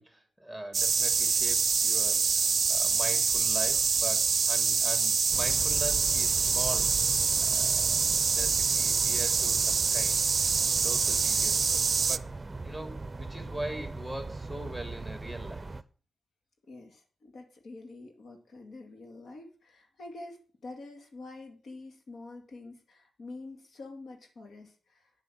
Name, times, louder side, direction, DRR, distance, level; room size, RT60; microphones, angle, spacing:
voice 1, 0.0-7.0 7.4-10.2 10.8-15.7, right 1 dB, 5° left, 4 dB, 3.4 m, -41 dB
sound 1, 0.7-12.2, right 5 dB, 60° right, 0.5 m, -26 dB
sound 2, 5.3-15.8, right 3 dB, 30° right, 0.7 m, -40 dB
voice 2, 16.7-25.1, left 2 dB, 80° left, 4 dB, 2.3 m, -46 dB
9.7 x 7.8 x 6.2 m, 0.40 s
cardioid pair, 65°, 0 cm